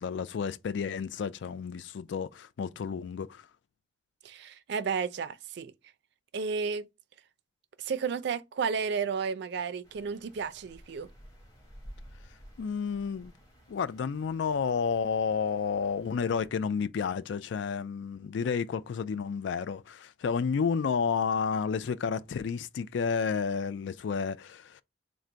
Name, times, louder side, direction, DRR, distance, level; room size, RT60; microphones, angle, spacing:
voice 1, 0.0-3.4 12.6-13.3 13.7-24.8, left 6 dB, 65° left, 0.3 m, -31 dB
voice 2, 4.2-5.7 6.3-6.9 7.8-11.1, right 5 dB, 60° right, 0.4 m, -32 dB
sound 1, 9.8-16.5, equal, 20° left, 1.3 m, -53 dB
3.8 x 2.1 x 4.4 m
head